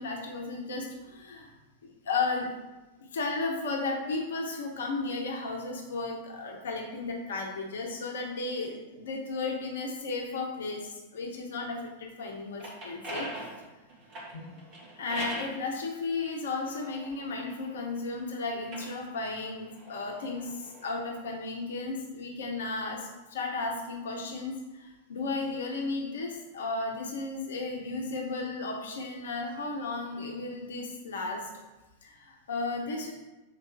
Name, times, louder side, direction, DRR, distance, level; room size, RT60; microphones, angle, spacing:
voice 1, 0.0-1.5 2.0-2.5 3.1-13.3 14.3-14.5 15.0-31.4 32.0-33.1, left 3 dB, 65° left, 2 dB, 0.7 m, -34 dB
sound 1, 12.3-15.6 16.3-18.0 18.5-20.9, right 1 dB, 40° right, 1.6 m, -42 dB
6.5 x 4.4 x 3.4 m, 1.1 s
figure-of-eight pair, 90°, 0 cm